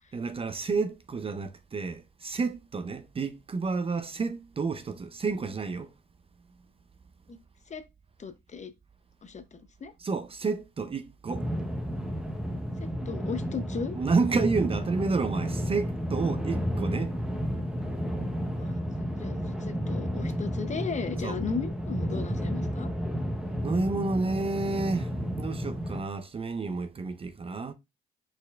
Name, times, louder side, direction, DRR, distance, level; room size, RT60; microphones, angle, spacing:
voice 1, 0.1-5.9 10.0-11.4 13.9-17.2 21.2-21.4 23.6-27.7, right 4 dB, 30° right, 0.5 m, -30 dB
voice 2, 8.2-8.7 9.2-9.9 12.8-14.0 18.6-22.9, left 5 dB, 35° left, 0.7 m, -36 dB
sound 1, 11.3-26.0, equal, 5° right, 0.8 m, -32 dB
4.3 x 4.2 x 2.3 m
cardioid pair, 90°, 20 cm